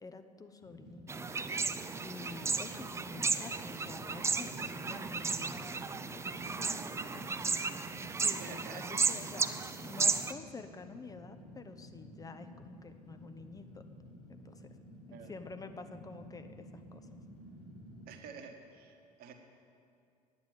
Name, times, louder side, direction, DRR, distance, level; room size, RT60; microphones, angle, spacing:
voice 1, 0.0-1.3 2.0-13.8 14.3-14.7 15.1-17.2, left 4 dB, 15° left, 8 dB, 0.7 m, -49 dB
Fire, 0.6-18.0, equal, 85° left, 2.0 m, -53 dB
sound 1, 1.1-10.3, right 4 dB, 15° right, 0.5 m, -34 dB
voice 2, 8.3-9.0 15.1-15.3 18.1-19.3, right 6 dB, 50° right, 4 dB, 1.4 m, -49 dB
9.5 x 9.4 x 8.0 m, 2.5 s
figure-of-eight pair, 60°, 20 cm